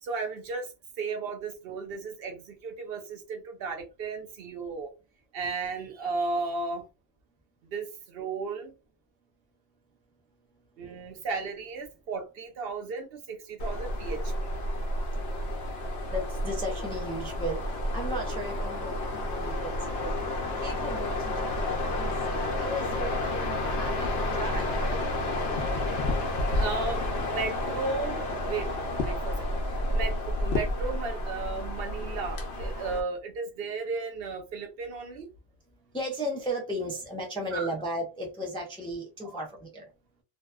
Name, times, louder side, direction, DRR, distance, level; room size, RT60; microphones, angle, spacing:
voice 1, 0.0-4.9 5.3-6.8 7.6-8.7 10.8-14.5 26.5-28.7 29.0-29.4 29.7-35.3 37.5-37.7 39.2-39.4, right 4 dB, 65° right, 0.7 m, -35 dB
sound 1, 13.6-33.0, left 1 dB, 70° left, 0.8 m, -30 dB
voice 2, 16.1-20.3 20.6-22.2 22.6-25.1 35.9-39.9, equal, 10° left, 0.4 m, -35 dB
2.6 x 2.1 x 2.3 m
omnidirectional pair, 1.1 m